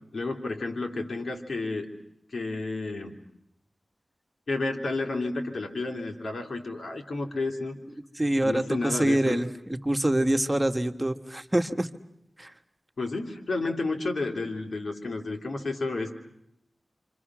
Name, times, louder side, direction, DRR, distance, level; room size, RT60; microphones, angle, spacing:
voice 1, 0.1-1.9 2.3-3.1 4.5-7.7 8.4-9.4 13.0-16.1, left 3 dB, 85° left, 3 dB, 3.0 m, -31 dB
voice 2, 8.2-11.9 12.4-12.5, right 1 dB, 20° right, 7 dB, 1.5 m, -25 dB
28.5 x 26.0 x 6.2 m, 0.78 s
wide cardioid pair, 50°, 0 cm